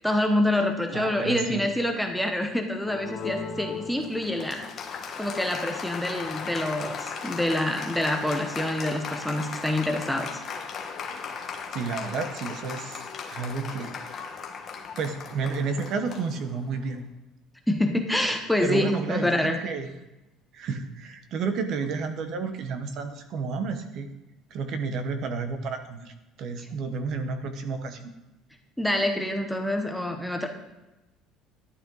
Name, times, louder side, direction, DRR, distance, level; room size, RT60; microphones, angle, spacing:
voice 1, 0.0-4.7 5.2-10.4 17.7-19.6 26.6-26.7 28.8-30.5, left 1 dB, ahead, 3 dB, 0.8 m, -26 dB
voice 2, 0.9-1.7 11.7-13.0 13.3-14.0 15.0-17.0 18.6-19.9 20.5-24.1 24.5-26.1 26.4-28.0, right 4 dB, 40° right, 8 dB, 1.0 m, -31 dB
Applause, 2.8-16.9, left 5 dB, 30° left, 1.3 m, -37 dB
12.0 x 11.0 x 4.0 m, 1.0 s
cardioid pair, 180°, 0 cm